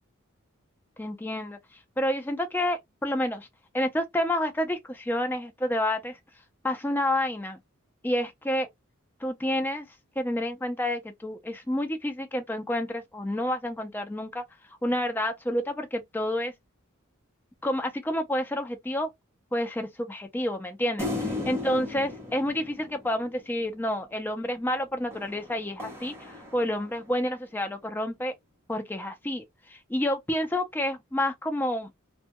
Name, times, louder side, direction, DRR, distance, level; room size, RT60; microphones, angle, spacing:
voice 1, 1.0-1.6 2.0-3.5 3.7-6.2 6.6-7.6 8.0-8.7 9.2-9.9 10.2-14.4 14.8-16.5 17.6-19.1 19.5-28.3 28.7-29.4 29.7-31.9, left 1 dB, 10° left, 0.4 m, -29 dB
sound 1, 21.0-23.7 25.1-27.2, left 2 dB, 10° right, 0.7 m, -36 dB
2.1 x 2.1 x 2.8 m
head